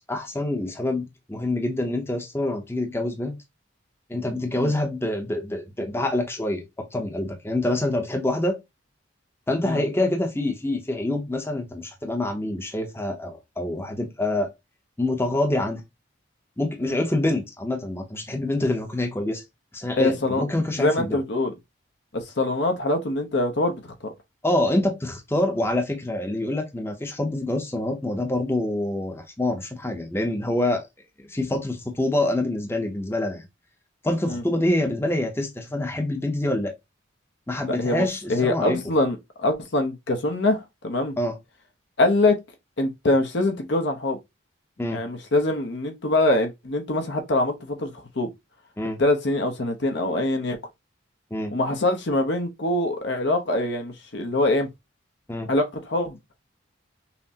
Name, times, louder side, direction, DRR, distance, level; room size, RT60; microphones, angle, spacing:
voice 1, 0.1-3.4 4.1-6.6 6.9-8.6 9.5-14.5 15.0-15.8 16.6-19.4 19.7-21.2 24.4-30.8 31.2-33.5 34.0-36.7 37.5-38.8 41.2-41.4 44.8-45.0 48.8-49.0 51.3-51.6 55.3-55.5, left 1 dB, 10° left, 0.7 m, -26 dB
voice 2, 20.0-20.4 20.8-21.5 22.1-23.8 24.0-24.1 34.2-34.4 37.7-41.2 42.0-42.4 42.8-44.2 44.9-48.3 49.0-50.6 51.5-54.7 55.5-56.2, left 2 dB, 60° left, 0.7 m, -24 dB
5.7 x 2.1 x 2.7 m
head